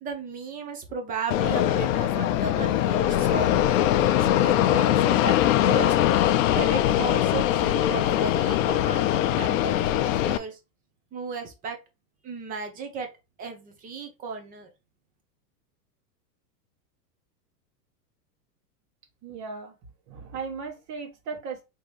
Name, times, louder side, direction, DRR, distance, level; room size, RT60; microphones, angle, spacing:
voice 1, 0.0-3.5 4.4-10.6 11.1-11.8 12.2-13.1 13.4-14.7, right 4 dB, 15° right, 5 dB, 0.7 m, -35 dB
Fixed-wing aircraft airplane, 1.3-10.4, left 12 dB, 55° left, 0.5 m, -22 dB
voice 2, 19.2-19.7 20.1-21.6, right 5 dB, 35° right, 2 dB, 1.5 m, -36 dB
3.8 x 3.0 x 3.2 m, 0.26 s
supercardioid pair, 140°, 49 cm